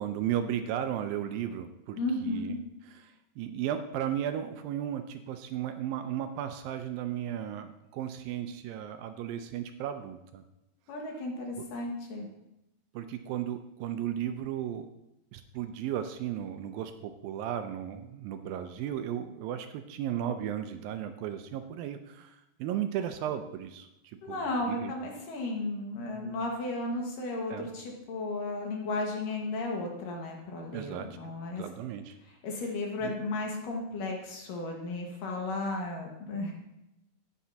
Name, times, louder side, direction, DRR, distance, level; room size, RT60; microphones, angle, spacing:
voice 1, 0.0-2.6 2.9-10.4 11.6-11.7 12.9-14.9 15.3-24.9 27.5-27.7 30.7-32.2 33.0-33.1, right 10 dB, 80° right, 8 dB, 2.2 m, -35 dB
voice 2, 2.0-2.6 10.9-12.3 24.2-31.6 32.4-36.5, left 2 dB, 65° left, 0 dB, 3.0 m, -34 dB
11.5 x 9.4 x 2.8 m, 0.91 s
omnidirectional pair, 4.3 m